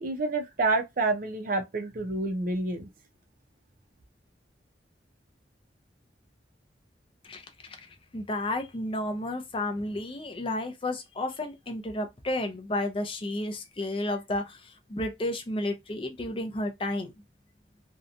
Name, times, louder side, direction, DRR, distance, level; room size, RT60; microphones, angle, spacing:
voice 1, 0.0-2.9, right 3 dB, 50° right, 0.5 m, -28 dB
voice 2, 7.2-7.9 8.1-17.1, left 1 dB, 30° left, 0.5 m, -32 dB
2.7 x 2.2 x 2.5 m
head